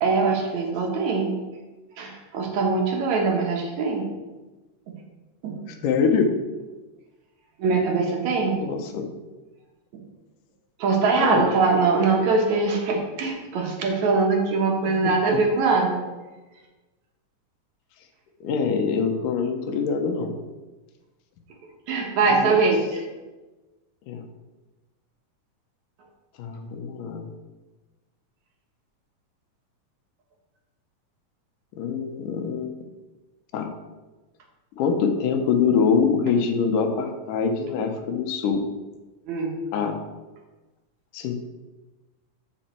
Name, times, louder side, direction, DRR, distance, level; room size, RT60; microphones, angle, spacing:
voice 1, 0.0-1.3 2.0-4.0 5.4-5.6 7.6-8.6 10.8-16.0 21.9-23.0 39.3-39.5, right 4 dB, 65° right, 1 dB, 2.4 m, -22 dB
voice 2, 5.7-6.3 8.6-9.1 11.2-11.5 14.8-15.0 15.3-15.4 18.4-20.3 22.2-22.6 24.1-24.2 26.4-27.3 31.8-32.7 33.5-33.7 34.7-38.7 39.7-40.0 41.1-41.4, left 6 dB, 75° left, 4 dB, 2.4 m, -24 dB
13.5 x 5.5 x 4.4 m, 1.2 s
omnidirectional pair, 3.8 m